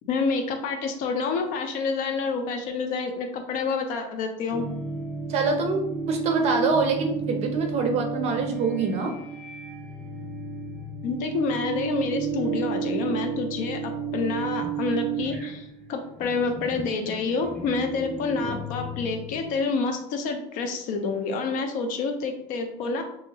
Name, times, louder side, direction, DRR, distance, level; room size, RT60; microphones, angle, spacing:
voice 1, 0.0-4.7 11.0-23.0, left 4 dB, 60° left, 5 dB, 0.6 m, -28 dB
sound 1, 4.5-19.6, right 5 dB, ahead, 0.8 m, -32 dB
voice 2, 5.3-9.1, right 4 dB, 45° right, 4 dB, 0.5 m, -25 dB
2.8 x 2.7 x 2.8 m, 0.77 s
cardioid pair, 130°, 16 cm